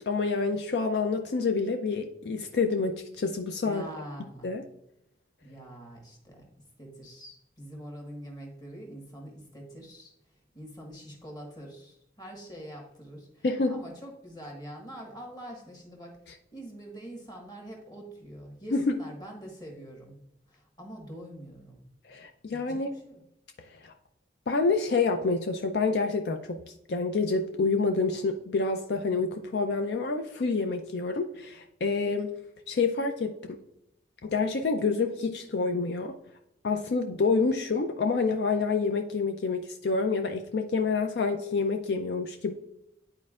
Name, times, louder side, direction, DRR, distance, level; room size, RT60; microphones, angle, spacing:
voice 1, 0.1-3.8 4.4-4.6 13.4-13.7 18.7-18.9 22.1-22.9 23.8-23.9 24.5-26.6 26.9-32.3 32.7-33.6 34.2-36.2 36.6-42.5, left 4 dB, 65° left, 5 dB, 0.4 m, -28 dB
voice 2, 3.6-4.5 5.4-6.5 6.8-10.1 10.5-16.2 16.5-21.8 22.5-23.2, right 1 dB, 20° left, 0 dB, 1.4 m, -44 dB
10.5 x 4.4 x 2.4 m, 0.82 s
head